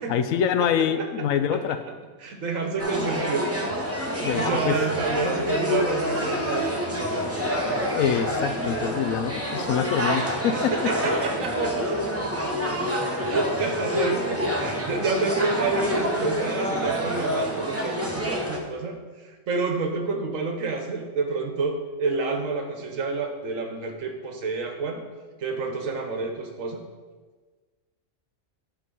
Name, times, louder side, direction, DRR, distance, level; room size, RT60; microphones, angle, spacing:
voice 1, 0.1-1.8 4.2-4.8 7.9-10.9, left 8 dB, 90° left, 10 dB, 1.0 m, -25 dB
voice 2, 0.6-1.3 2.2-3.5 4.0-6.8 10.5-12.5 13.2-25.0 25.4-26.8, right 4 dB, 75° right, 4 dB, 1.4 m, -29 dB
sound 1, 2.8-18.6, equal, 15° right, 0.8 m, -27 dB
11.0 x 3.8 x 5.4 m, 1.4 s
omnidirectional pair, 1.4 m